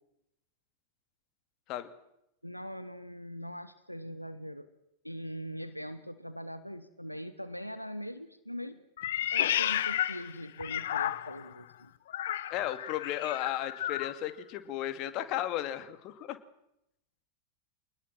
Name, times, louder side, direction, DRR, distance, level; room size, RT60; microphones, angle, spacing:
voice 1, 2.4-4.7 5.0-8.8 9.3-11.9, equal, 90° left, 12 dB, 1.3 m, -41 dB
Meow, 9.0-11.5 12.1-14.1, left 12 dB, 60° left, 1.1 m, -32 dB
voice 2, 12.5-16.4, left 12 dB, 40° left, 10 dB, 2.4 m, -34 dB
25.5 x 20.0 x 7.6 m, 0.81 s
figure-of-eight pair, 90°, 0 cm